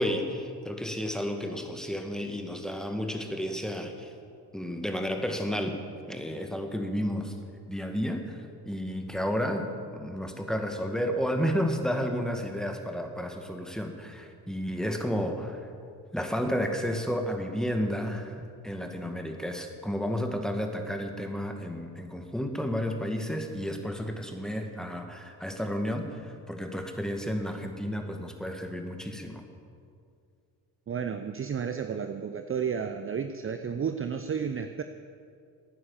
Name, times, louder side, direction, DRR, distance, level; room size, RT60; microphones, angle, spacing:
voice 1, 0.0-4.1 4.5-5.8 6.1-7.3 7.7-15.7 16.1-29.4, equal, ahead, 4 dB, 2.1 m, -32 dB
voice 2, 30.9-34.8, right 7 dB, 25° right, 8 dB, 0.7 m, -32 dB
16.5 x 9.5 x 7.3 m, 2.3 s
hypercardioid pair, 50°, 48 cm